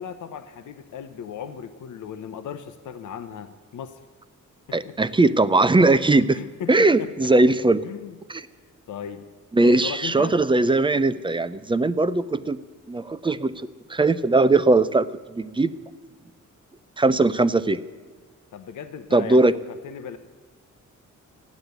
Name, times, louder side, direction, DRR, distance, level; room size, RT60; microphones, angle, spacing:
voice 1, 0.0-4.0 4.7-5.0 6.3-7.6 7.8-8.1 8.9-9.3 9.6-10.4 18.5-20.2, left 8 dB, 75° left, 8 dB, 0.9 m, -37 dB
voice 2, 4.7-6.4 6.7-7.8 8.3-8.4 9.5-12.6 12.9-13.5 13.9-15.7 17.0-17.8 19.1-19.5, right 2 dB, 15° right, 15 dB, 0.5 m, -19 dB
14.5 x 10.5 x 8.0 m, 1.5 s
wide cardioid pair, 145°, 31 cm